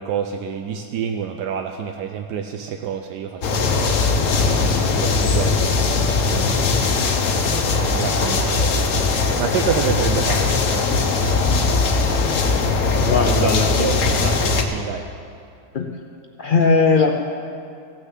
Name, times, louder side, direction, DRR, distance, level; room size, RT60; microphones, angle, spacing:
voice 1, 0.0-4.0 4.5-5.8 6.2-6.6 7.4-7.5 7.9-8.4 9.4-11.8 13.3-13.5 13.8-15.0, right 7 dB, 80° right, 5 dB, 1.2 m, -28 dB
sound 1, 3.4-14.6, left 4 dB, 55° left, 1.2 m, -20 dB
voice 2, 12.9-14.0 15.7-15.9 16.4-17.1, left 4 dB, 80° left, 2 dB, 0.4 m, -19 dB
15.0 x 6.7 x 7.4 m, 2.4 s
omnidirectional pair, 1.8 m